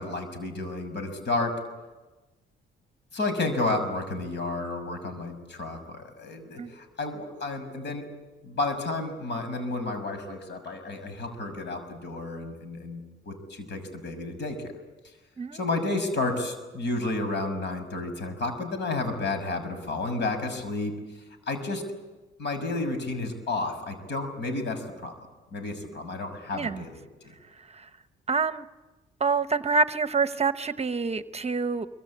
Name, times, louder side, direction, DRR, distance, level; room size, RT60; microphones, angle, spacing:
voice 1, 0.0-1.6 3.1-8.1 8.4-14.7 15.5-20.9 21.5-21.9 22.4-25.1 25.5-27.0, left 2 dB, 60° left, 9 dB, 6.3 m, -31 dB
voice 2, 26.5-26.8 27.7-27.9 28.3-28.6 29.2-31.9, right 5 dB, 30° right, 12 dB, 1.0 m, -26 dB
25.0 x 24.0 x 8.7 m, 1.2 s
cardioid pair, 90°, 20 cm